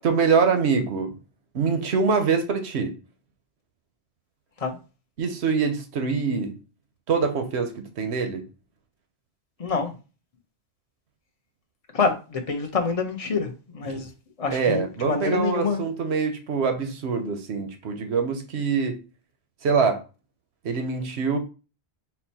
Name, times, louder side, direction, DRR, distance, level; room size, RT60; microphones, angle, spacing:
voice 1, 0.0-1.1 1.5-2.9 5.2-6.6 7.1-8.4 13.8-14.0 14.5-19.0 19.6-20.0 20.6-21.4, right 5 dB, 85° right, 1.1 m, -24 dB
voice 2, 9.6-9.9 11.9-14.1 14.4-15.8, left 5 dB, 40° left, 0.7 m, -26 dB
4.3 x 2.2 x 4.1 m
omnidirectional pair, 1.1 m